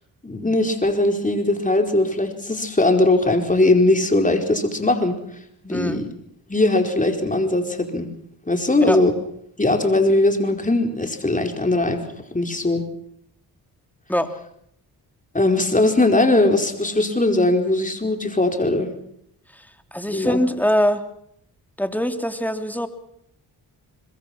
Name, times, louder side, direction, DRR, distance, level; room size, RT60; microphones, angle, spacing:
voice 1, 0.2-5.2 5.6-6.1 6.5-8.1 8.5-9.1 9.6-12.0 12.3-12.8 15.3-18.9 20.1-20.4, left 2 dB, 20° left, 4 dB, 4.6 m, -20 dB
voice 2, 5.7-6.0 8.8-9.0 14.1-14.3 19.9-21.0 21.8-22.9, equal, 5° left, 7 dB, 3.2 m, -22 dB
25.5 x 22.5 x 6.1 m, 0.72 s
cardioid pair, 55°, 40 cm